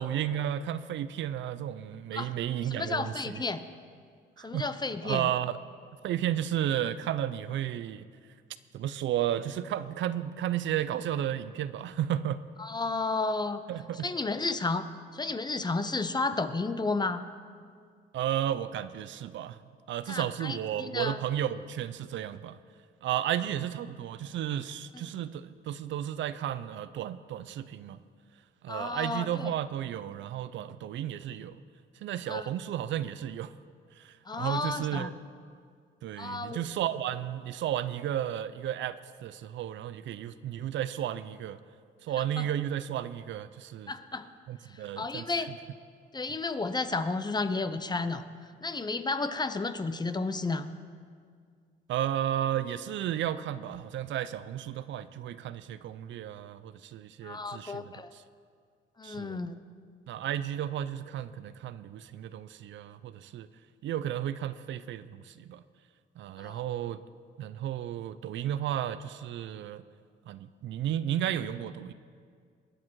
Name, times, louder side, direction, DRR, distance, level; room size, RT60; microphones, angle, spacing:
voice 1, 0.0-3.1 4.4-4.7 5.0-5.6 6.0-8.1 8.7-12.4 13.7-14.1 18.1-19.6 19.9-22.6 23.0-28.0 28.6-31.6 32.0-33.5 34.0-35.1 36.0-41.6 42.0-43.9 44.5-45.2 51.9-57.8 59.0-59.4 60.1-63.5 63.8-65.6 66.2-67.0 67.4-69.8 70.3-71.9, right 11 dB, 70° right, 14 dB, 0.5 m, -33 dB
voice 2, 2.6-3.6 4.4-5.3 12.6-13.6 13.9-14.9 15.1-17.2 20.1-21.2 28.7-29.5 32.3-32.5 34.3-35.1 36.2-36.7 42.4-42.5 43.9-44.3 44.7-45.5 46.1-48.2 48.6-50.7 57.2-58.1 59.0-59.6 66.4-66.6, left 3 dB, 20° left, 11 dB, 0.7 m, -32 dB
20.5 x 8.6 x 4.7 m, 2.1 s
cardioid pair, 90°, 20 cm